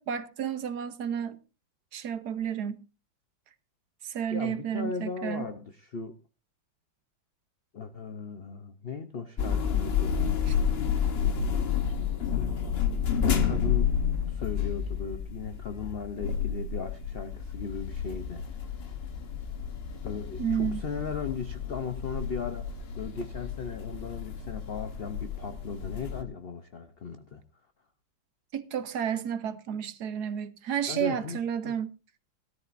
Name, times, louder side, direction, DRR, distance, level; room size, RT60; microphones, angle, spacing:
voice 1, 0.0-1.4 1.9-2.8 4.0-5.5 10.5-10.6 20.4-20.8 28.5-31.9, right 8 dB, 60° right, 1.3 m, -31 dB
voice 2, 4.3-6.2 7.7-10.4 12.3-12.6 13.1-13.9 14.3-18.4 20.0-27.4 30.9-31.4 31.6-31.7, left 5 dB, 70° left, 0.5 m, -37 dB
sound 1, 9.4-26.2, left 7 dB, 40° left, 0.9 m, -30 dB
17.5 x 13.5 x 2.6 m
omnidirectional pair, 2.2 m